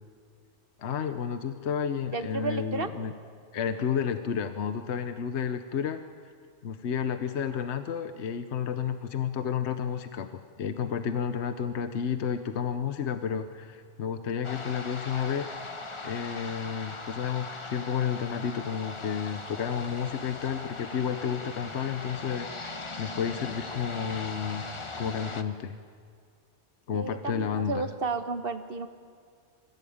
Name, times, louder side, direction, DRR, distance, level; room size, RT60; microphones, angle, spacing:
voice 1, 0.8-3.1 3.5-6.0 6.6-15.5 16.0-24.6 25.0-25.8 26.9-27.9, left 7 dB, 70° left, 9 dB, 1.1 m, -31 dB
voice 2, 2.1-2.9 26.9-28.9, right 4 dB, 50° right, 9 dB, 1.3 m, -32 dB
sound 1, 14.4-25.4, left 3 dB, 25° left, 1.0 m, -40 dB
25.5 x 15.0 x 8.7 m, 2.2 s
omnidirectional pair, 1.2 m